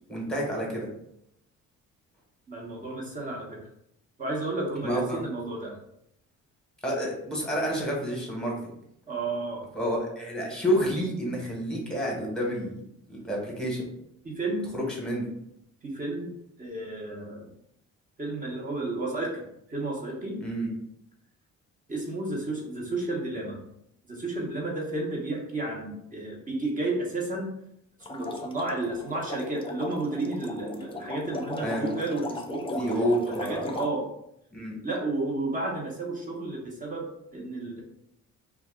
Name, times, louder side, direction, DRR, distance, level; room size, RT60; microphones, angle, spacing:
voice 1, 0.1-0.9 4.8-5.2 6.8-8.5 9.7-13.9 14.7-15.3 20.4-20.7 31.5-31.9 32.8-33.6 34.5-34.8, equal, 5° left, -2 dB, 1.2 m, -29 dB
voice 2, 2.5-3.7 4.2-5.8 9.1-9.7 14.2-14.7 15.8-17.5 18.2-20.5 21.9-23.6 24.1-27.6 28.1-34.1 34.8-37.8, right 2 dB, 25° right, -2 dB, 1.0 m, -32 dB
sound 1, 28.0-33.9, left 3 dB, 20° left, 0.3 m, -37 dB
2.6 x 2.3 x 3.6 m, 0.75 s
cardioid pair, 90°, 30 cm